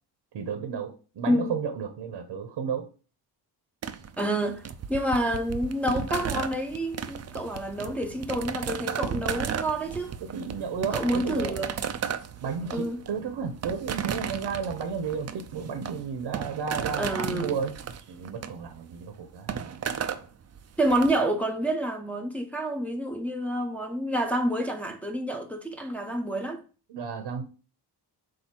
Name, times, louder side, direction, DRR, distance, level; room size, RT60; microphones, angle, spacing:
voice 1, 0.3-2.9 10.2-11.6 12.4-17.8 18.1-19.6 26.9-27.4, right 6 dB, 85° right, 1.1 m, -33 dB
sound 1, 3.8-21.1, right 7 dB, 40° right, 0.5 m, -34 dB
voice 2, 4.2-4.6 4.9-10.1 10.9-11.7 12.7-13.0 17.0-17.5 20.8-26.6, right 1 dB, 5° left, 0.7 m, -28 dB
7.7 x 2.7 x 6.0 m
wide cardioid pair, 160°, 41 cm